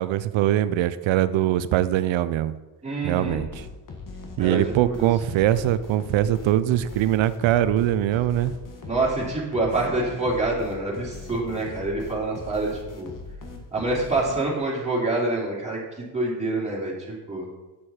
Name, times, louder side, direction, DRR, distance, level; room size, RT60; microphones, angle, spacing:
voice 1, 0.0-2.5 3.0-3.7 4.4-8.5, right 12 dB, 80° right, 15 dB, 0.6 m, -22 dB
voice 2, 2.8-3.4 4.4-4.6 4.9-5.1 8.9-12.7 13.0-13.1 13.7-17.5, right 2 dB, 15° right, -5 dB, 3.1 m, -26 dB
sound 1, 3.2-14.8, left 3 dB, 45° left, 1.5 m, -40 dB
8.6 x 6.4 x 4.3 m, 1.1 s
cardioid pair, 90°, 45 cm